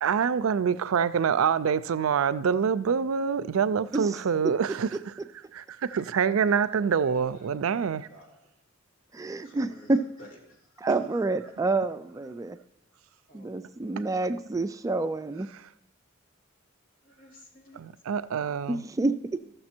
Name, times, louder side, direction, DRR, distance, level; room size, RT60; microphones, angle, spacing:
voice 1, 0.0-5.2 5.5-8.1 10.9-11.0 15.5-15.7 17.7-18.8, right 6 dB, 85° right, 0.4 m, -26 dB
voice 2, 5.9-7.5 7.8-8.5 9.4-10.9 11.4-11.6 13.3-14.0 17.0-17.8 19.4-19.5, equal, 70° left, 3.0 m, -53 dB
voice 3, 9.1-10.0 10.8-12.6 13.3-15.5 18.7-19.4, right 2 dB, 15° right, 0.3 m, -28 dB
14.0 x 6.7 x 4.4 m
head